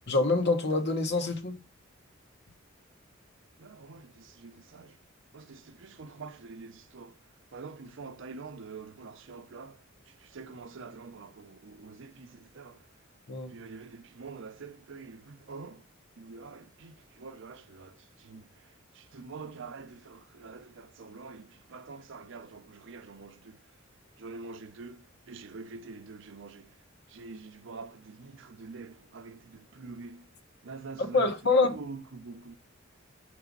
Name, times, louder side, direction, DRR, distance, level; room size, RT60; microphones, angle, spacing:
voice 1, 0.1-1.6 13.3-13.5 31.1-31.8, left 3 dB, 60° left, 1.0 m, -25 dB
voice 2, 3.6-5.0 5.3-7.2 7.5-12.9 13.5-15.9 16.2-23.7 24.2-26.8 27.1-30.3 30.6-31.3 31.7-32.6, right 4 dB, 65° right, 0.6 m, -46 dB
6.0 x 3.3 x 5.2 m
head